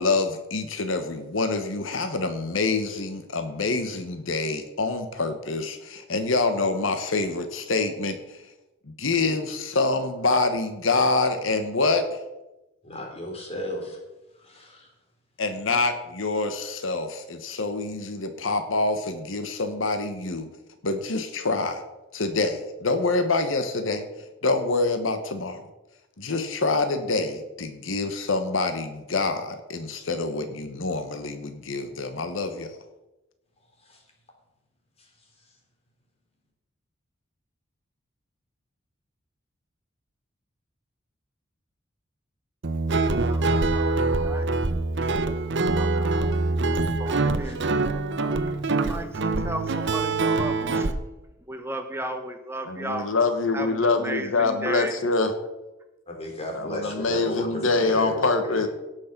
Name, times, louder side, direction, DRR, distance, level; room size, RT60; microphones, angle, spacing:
voice 1, 0.0-8.4 8.9-12.2 15.4-20.5 20.8-21.8 22.1-24.0 24.4-25.6 26.2-32.8 52.7-55.3 56.5-58.7, left 3 dB, 75° left, 8 dB, 1.1 m, -26 dB
voice 2, 12.8-14.0 14.4-14.9 33.9-34.0 47.4-47.5 56.1-57.6 57.9-58.1 58.5-58.6, left 1 dB, 30° left, 1 dB, 3.2 m, -34 dB
Guitar, 42.6-50.9, right 3 dB, 65° right, 0.8 m, -24 dB
voice 3, 43.2-44.5 45.7-47.6 48.2-50.9 51.5-53.1 53.5-54.9, right 1 dB, 10° right, 6 dB, 0.8 m, -35 dB
17.5 x 6.3 x 5.9 m, 1.0 s
head